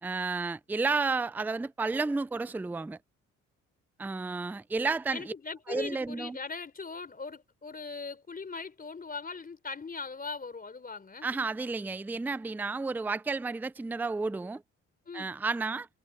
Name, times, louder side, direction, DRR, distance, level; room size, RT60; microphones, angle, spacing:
voice 1, 0.0-3.0 4.0-5.3 5.7-6.4 11.2-14.6 15.1-15.9, right 3 dB, 5° right, 0.4 m, -31 dB
voice 2, 5.1-11.3 15.1-15.3, left 4 dB, 30° left, 4.1 m, -40 dB
cardioid pair, 90°, 30 cm